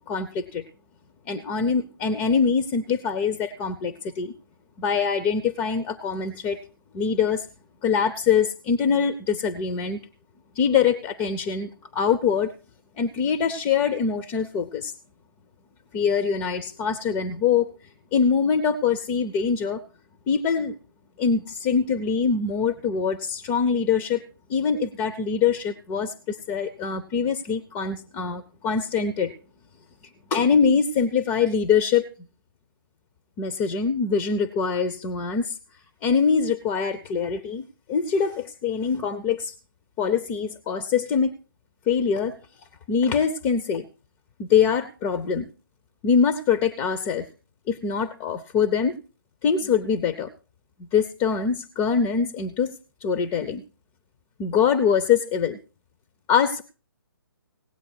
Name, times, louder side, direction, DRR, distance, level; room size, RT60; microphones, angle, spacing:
voice 1, 0.1-0.6 1.3-4.3 4.8-6.6 6.9-7.5 7.8-10.0 10.6-12.5 13.0-14.9 15.9-17.7 18.1-19.8 20.3-20.8 21.2-24.2 24.5-29.3 30.3-32.1 33.4-35.6 36.0-39.5 40.0-41.3 41.9-42.4 42.9-43.9 44.4-45.5 46.0-47.3 47.7-49.0 49.4-50.3 50.8-52.7 53.0-53.6 54.4-55.6 56.3-56.6, left 6 dB, 15° left, 10 dB, 0.6 m, -23 dB
17.5 x 8.7 x 4.4 m, 0.33 s
figure-of-eight pair, 135°, 12 cm